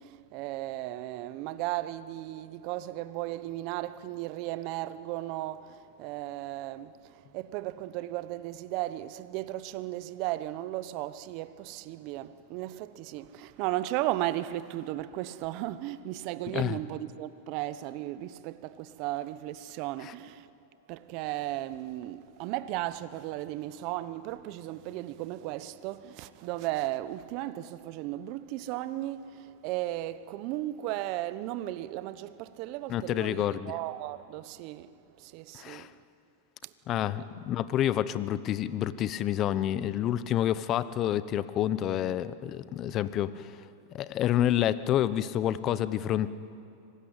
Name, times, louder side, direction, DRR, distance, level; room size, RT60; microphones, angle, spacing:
voice 1, 0.0-7.0 7.3-20.5 20.9-34.9 35.2-35.9, right 15 dB, 50° right, 1.0 m, -35 dB
voice 2, 32.9-33.7 35.6-35.9 36.9-43.5 43.9-46.3, left 11 dB, 40° left, 0.9 m, -28 dB
25.0 x 18.5 x 9.0 m
hypercardioid pair, 115°, 0 cm